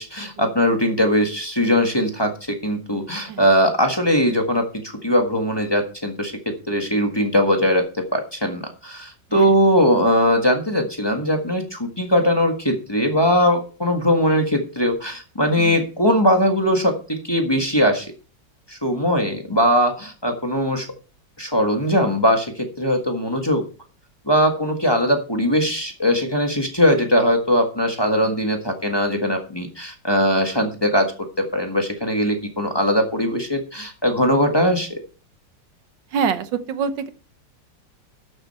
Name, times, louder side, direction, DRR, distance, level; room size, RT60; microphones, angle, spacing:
voice 1, 0.0-6.3 6.7-7.8 8.1-18.1 18.7-20.9 21.4-23.6 24.3-31.1 31.4-35.0, equal, 15° left, 3 dB, 1.5 m, -20 dB
voice 2, 36.1-37.1, right 6 dB, 80° right, 11 dB, 1.6 m, -25 dB
12.0 x 7.7 x 4.3 m, 0.36 s
omnidirectional pair, 1.9 m